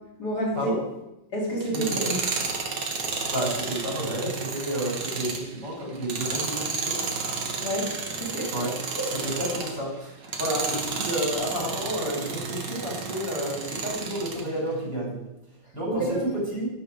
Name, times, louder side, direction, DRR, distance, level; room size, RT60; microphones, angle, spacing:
voice 1, 0.2-0.7 1.3-2.1 7.6-7.9 8.2-8.5 9.0-9.4 15.9-16.2, right 1 dB, 50° left, -4 dB, 3.9 m, -29 dB
Tools, 1.6-9.8 10.2-14.5, right 4 dB, 85° right, 2.3 m, -32 dB
voice 2, 1.7-2.2 3.3-7.0 8.5-8.8 9.2-15.2 15.7-16.7, right 1 dB, 60° right, -3 dB, 6.2 m, -30 dB
12.0 x 10.5 x 5.1 m, 0.92 s
omnidirectional pair, 2.2 m